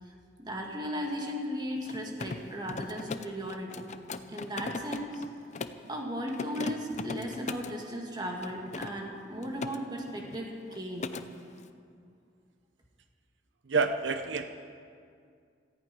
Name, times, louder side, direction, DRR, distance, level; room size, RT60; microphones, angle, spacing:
voice 1, 0.4-3.9 4.3-5.2 5.9-11.1, equal, 25° right, 0 dB, 2.2 m, -36 dB
Mechanisms, 1.8-5.9 6.3-7.8 8.4-9.8 10.1-10.4 10.7-11.3, left 3 dB, 40° left, 0.6 m, -39 dB
voice 2, 13.7-14.4, right 4 dB, 90° right, 8 dB, 0.7 m, -28 dB
17.5 x 14.5 x 5.4 m, 2.3 s
head